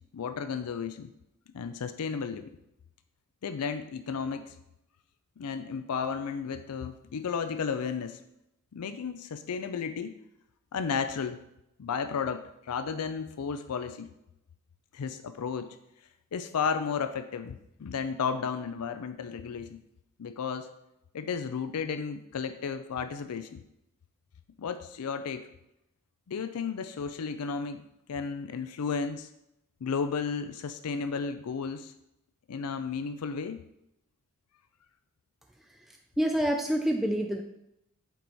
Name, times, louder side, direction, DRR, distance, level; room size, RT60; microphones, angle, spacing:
voice 1, 0.1-1.1 1.5-2.5 3.4-4.6 5.4-8.2 8.7-10.2 10.7-11.4 11.8-14.1 14.9-15.8 16.3-19.8 20.2-20.7 21.1-23.6 24.6-25.5 26.3-29.3 29.8-31.9 32.5-33.6, left 6 dB, 85° left, 10 dB, 0.4 m, -33 dB
voice 2, 35.6-37.4, equal, ahead, 2 dB, 0.3 m, -28 dB
8.1 x 4.6 x 4.0 m, 0.84 s
head